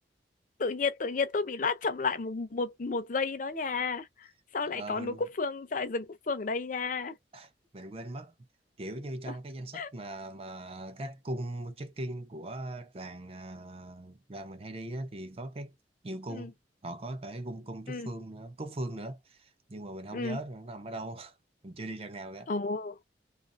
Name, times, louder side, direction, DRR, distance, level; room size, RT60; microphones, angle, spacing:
voice 1, 0.6-4.3 4.5-7.1 9.7-9.9 16.3-16.5 17.9-18.1 20.1-20.4 22.5-23.0, left 4 dB, 45° left, 0.6 m, -32 dB
voice 2, 4.6-5.3 7.3-8.3 8.8-15.7 16.0-16.5 16.8-21.4 21.6-22.5, right 1 dB, 35° right, 0.6 m, -40 dB
2.9 x 2.5 x 2.5 m
head